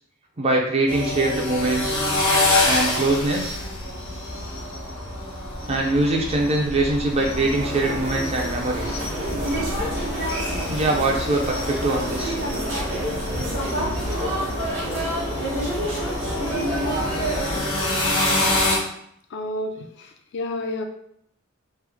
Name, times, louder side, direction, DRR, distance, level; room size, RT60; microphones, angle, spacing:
voice 1, 0.4-2.0 2.6-3.6 5.7-9.0 10.6-12.4, right 2 dB, 30° right, 0 dB, 0.6 m, -23 dB
sound 1, 0.9-18.8, left 2 dB, 85° left, 1.3 m, -27 dB
sound 2, 7.5-17.6, right 1 dB, 65° right, 1.1 m, -28 dB
voice 2, 19.3-20.8, left 1 dB, 60° left, 4 dB, 0.4 m, -30 dB
3.2 x 2.1 x 3.4 m, 0.71 s
head